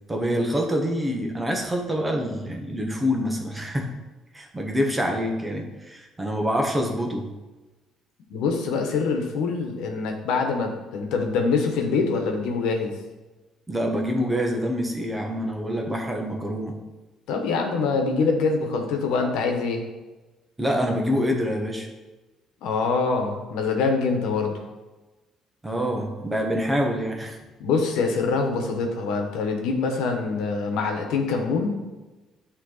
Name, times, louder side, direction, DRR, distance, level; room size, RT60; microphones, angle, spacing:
voice 1, 0.1-3.9 4.3-7.3 13.7-16.8 20.6-21.9 25.6-27.4, equal, 15° right, 2 dB, 1.1 m, -26 dB
voice 2, 8.3-12.9 17.3-19.8 22.6-24.5 27.6-31.8, left 4 dB, 85° left, 3 dB, 1.1 m, -24 dB
9.6 x 3.2 x 4.0 m, 1.2 s
cardioid pair, 110°, 0 cm